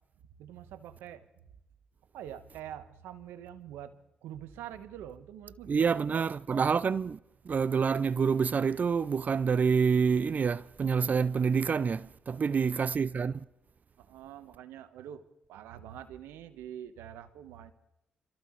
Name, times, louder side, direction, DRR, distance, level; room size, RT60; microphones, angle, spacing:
voice 1, 0.4-1.3 2.1-6.3 12.4-12.7 14.1-17.7, right 10 dB, 80° right, 1.2 m, -45 dB
voice 2, 5.7-7.2 7.4-13.4, right 6 dB, 50° right, 0.5 m, -27 dB
27.5 x 14.5 x 3.2 m
hypercardioid pair, 45°, 4 cm